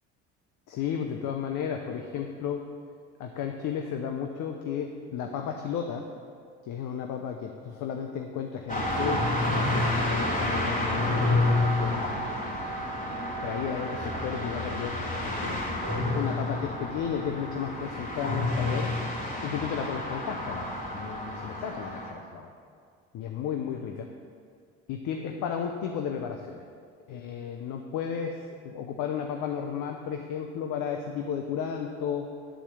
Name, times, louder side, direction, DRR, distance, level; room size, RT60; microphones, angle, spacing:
voice 1, 0.7-2.6 3.2-6.1 6.6-9.3 9.7-12.1 13.4-15.6 16.1-18.9 19.4-22.5 23.1-24.1 24.9-26.6 27.1-32.3, left 7 dB, 65° left, 4 dB, 0.8 m, -33 dB
sound 1, 8.7-22.1, left 2 dB, 25° left, 2.7 m, -29 dB
10.0 x 4.3 x 6.8 m, 2.1 s
hypercardioid pair, 65°, 34 cm